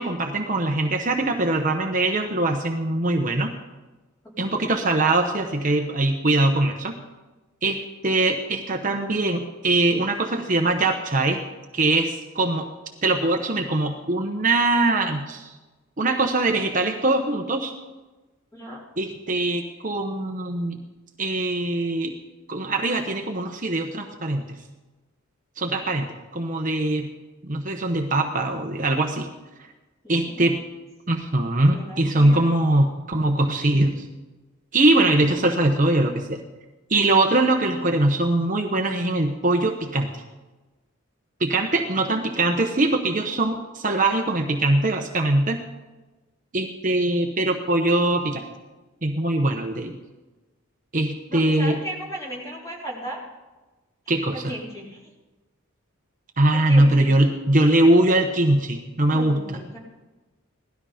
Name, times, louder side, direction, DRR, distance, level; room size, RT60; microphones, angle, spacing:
voice 1, 0.0-3.5 4.4-6.9 7.6-11.4 11.7-12.7 13.0-15.5 16.0-17.7 19.0-20.8 21.2-22.1 22.5-24.5 25.6-27.1 27.4-29.3 30.1-30.6 31.1-34.0 34.7-36.4 36.9-40.1 41.4-45.6 46.5-48.4 49.0-49.9 50.9-51.7 54.1-54.5 56.4-59.6, right 2 dB, 35° right, 3 dB, 1.0 m, -22 dB
voice 2, 4.2-4.8 18.5-18.8 30.0-30.4 31.7-32.6 51.3-53.2 54.3-55.1 56.5-57.1 59.1-59.8, right 1 dB, 15° left, -4 dB, 4.0 m, -36 dB
17.5 x 12.5 x 5.1 m, 1.2 s
head